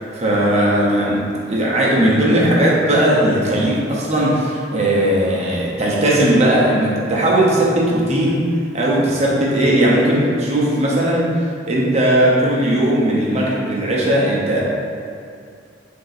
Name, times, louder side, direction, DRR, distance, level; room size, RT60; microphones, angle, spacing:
voice 1, 0.1-8.4 8.7-11.3 11.7-14.6, right 1 dB, 35° right, -5 dB, 0.7 m, -17 dB
3.7 x 2.7 x 4.0 m, 2.3 s
head